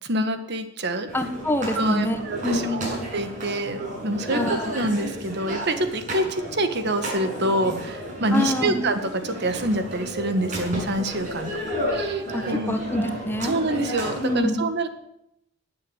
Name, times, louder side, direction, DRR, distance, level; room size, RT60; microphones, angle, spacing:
voice 1, 0.0-1.1 1.7-11.6 11.9-12.8 13.4-14.9, right 1 dB, 55° right, 8 dB, 1.6 m, -26 dB
voice 2, 1.1-3.1 4.3-4.7 8.3-8.8 12.3-12.4 12.7-13.5 14.2-14.6, left 1 dB, 10° left, 6 dB, 1.3 m, -26 dB
sound 1, 1.1-14.3, equal, 40° right, 7.2 m, -32 dB
20.0 x 7.7 x 8.1 m, 0.81 s
head